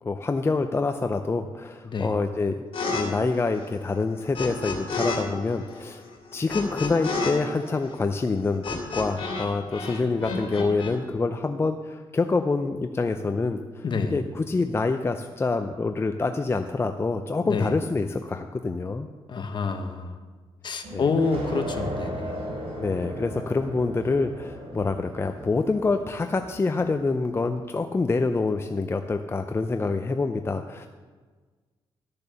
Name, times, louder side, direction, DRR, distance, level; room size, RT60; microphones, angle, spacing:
voice 1, 0.0-2.5 2.9-6.0 6.3-19.1 20.9-21.1 22.8-30.9, left 3 dB, 25° left, 7 dB, 0.5 m, -26 dB
voice 2, 1.8-2.2 13.8-14.2 17.4-17.7 19.3-20.2 20.6-22.4, left 4 dB, 50° left, 7 dB, 1.2 m, -27 dB
sound 1, 2.7-3.0 3.3-5.2 5.4-9.5 9.7-10.9, left 4 dB, 65° left, 2.6 m, -31 dB
sound 2, 20.8-27.2, right 1 dB, 65° right, 4.0 m, -37 dB
12.0 x 6.8 x 6.9 m, 1.4 s
cardioid pair, 105°, 10 cm